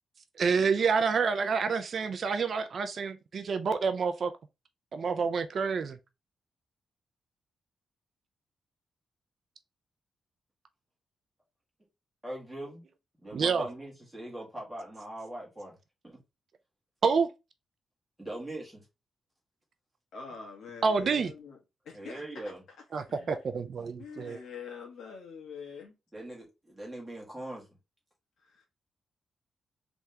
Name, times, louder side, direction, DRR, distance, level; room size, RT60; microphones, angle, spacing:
voice 1, 0.4-4.3 4.9-6.0 13.3-13.7 17.0-17.3 20.8-21.3 22.9-24.4, right 5 dB, 40° right, 0.4 m, -28 dB
voice 2, 12.2-12.8 13.2-15.8 16.0-16.2 18.2-18.9 21.9-22.6 26.1-27.7, right 1 dB, 5° right, 1.7 m, -41 dB
voice 3, 20.1-21.6 21.8-22.5 23.0-23.5 24.0-25.9 28.4-28.6, left 6 dB, 70° left, 1.4 m, -45 dB
3.5 x 3.3 x 2.7 m
wide cardioid pair, 180°, 0 cm